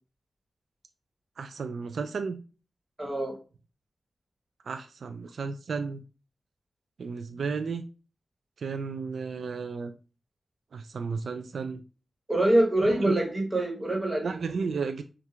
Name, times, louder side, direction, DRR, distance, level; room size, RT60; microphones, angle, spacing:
voice 1, 1.4-2.4 4.7-6.0 7.0-7.9 8.6-9.9 10.7-11.8 12.8-13.2 14.2-15.0, right 5 dB, 85° right, 0.3 m, -33 dB
voice 2, 3.0-3.3 12.3-14.4, right 1 dB, 25° right, 1.6 m, -25 dB
4.5 x 2.4 x 3.3 m
wide cardioid pair, 75°, 0 cm